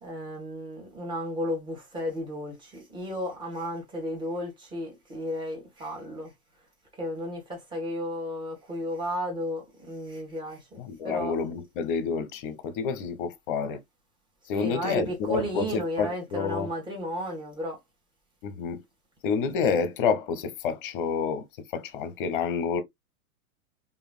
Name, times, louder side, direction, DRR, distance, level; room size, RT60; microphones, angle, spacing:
voice 1, 0.0-6.3 7.0-11.4 14.5-17.8, equal, 10° right, 1.6 m, -33 dB
voice 2, 10.7-13.8 14.5-16.7 18.4-18.8 19.2-21.4 21.7-22.8, left 6 dB, 35° left, 0.9 m, -29 dB
4.9 x 2.7 x 2.3 m
figure-of-eight pair, 105°, 45 cm